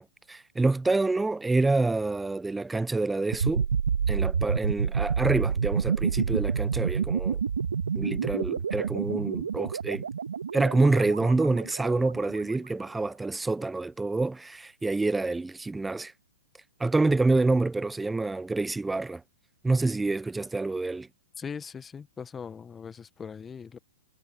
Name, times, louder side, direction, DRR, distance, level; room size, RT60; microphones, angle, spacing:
voice 1, 0.0-3.7 4.1-7.4 7.9-10.0 10.5-16.1 16.8-19.2 19.6-21.1, right 3 dB, 5° right, 0.8 m, -27 dB
sound 1, 3.3-12.2, right 6 dB, 75° right, 1.8 m, -28 dB
voice 2, 21.4-23.8, left 6 dB, 15° left, 1.5 m, -40 dB
hypercardioid pair, 115°, 0 cm